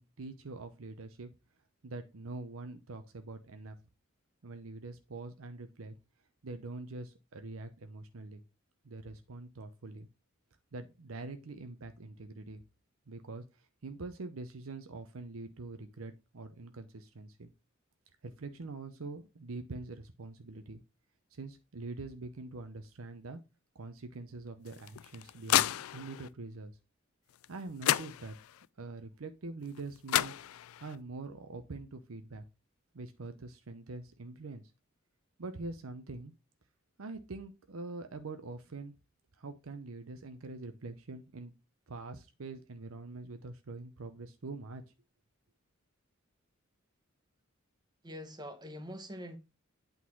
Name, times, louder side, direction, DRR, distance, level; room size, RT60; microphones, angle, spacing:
voice 1, 0.0-1.3 1.8-3.8 4.4-6.0 6.4-8.4 8.8-10.1 10.7-12.6 13.1-17.5 18.2-20.8 21.3-23.4 23.7-26.7 27.5-28.3 28.8-30.3 30.8-32.4 32.9-34.6 35.4-36.3 37.0-38.9 39.4-41.5 41.9-44.8, right 3 dB, 80° right, 0.7 m, -44 dB
sound 1, 24.7-26.3 27.4-27.5 27.8-28.7 29.8-29.9 30.1-31.0, left 12 dB, 85° left, 0.4 m, -31 dB
voice 2, 48.0-49.4, equal, 20° right, 1.0 m, -44 dB
8.5 x 3.9 x 4.6 m
head